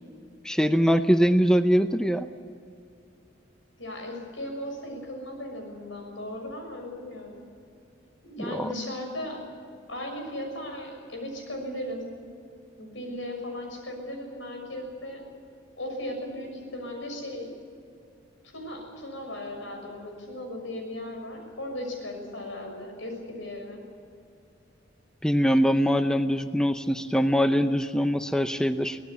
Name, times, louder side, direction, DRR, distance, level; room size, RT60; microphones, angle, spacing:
voice 1, 0.4-2.3 8.4-8.7 25.2-29.0, equal, 5° left, 8 dB, 0.6 m, -23 dB
voice 2, 3.8-7.3 8.2-9.5 9.9-12.1 12.8-15.2 15.8-17.5 18.5-23.8, left 1 dB, 85° left, 3 dB, 6.6 m, -37 dB
24.0 x 18.0 x 8.3 m, 2.4 s
head